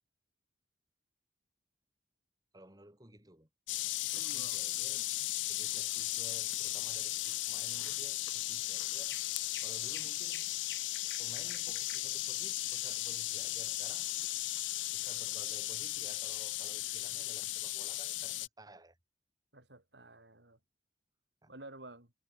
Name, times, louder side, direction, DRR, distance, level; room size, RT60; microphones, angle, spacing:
voice 1, 2.5-3.5 4.1-5.0 5.5-9.2 9.6-10.5 11.2-14.1 14.9-19.0 21.4-21.5, right 1 dB, 20° right, 4.4 m, -55 dB
sound 1, 3.7-18.5, left 16 dB, 90° left, 0.6 m, -36 dB
voice 2, 4.1-4.6 19.5-20.6 21.5-22.1, right 2 dB, 65° right, 5.8 m, -52 dB
sound 2, 8.2-8.6 9.0-13.9, left 10 dB, 60° left, 5.0 m, -52 dB
head